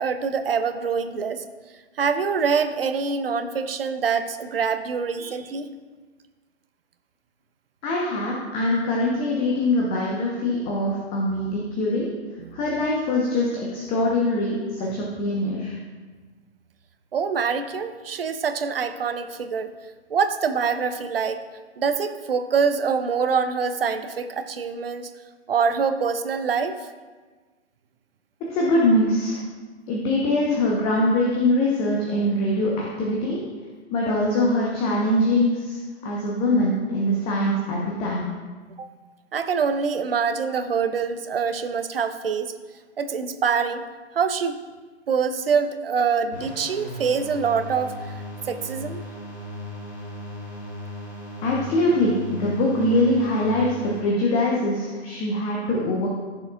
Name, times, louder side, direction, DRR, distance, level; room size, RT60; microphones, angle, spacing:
voice 1, 0.0-1.4 2.0-5.7 12.4-12.6 17.1-19.7 20.1-21.4 21.8-25.1 25.5-26.8 38.8-38.9 39.3-42.5 43.0-43.8 44.1-44.6 45.1-47.9 48.5-49.0, right 6 dB, 55° right, 10 dB, 0.8 m, -25 dB
voice 2, 7.8-12.1 12.5-15.7 28.5-29.4 29.9-33.4 33.9-38.3 51.4-56.1, left 1 dB, 15° left, -3 dB, 1.0 m, -23 dB
sound 1, 46.3-54.0, left 1 dB, 65° left, 2.5 m, -37 dB
14.5 x 6.8 x 2.4 m, 1.4 s
figure-of-eight pair, 125°, 34 cm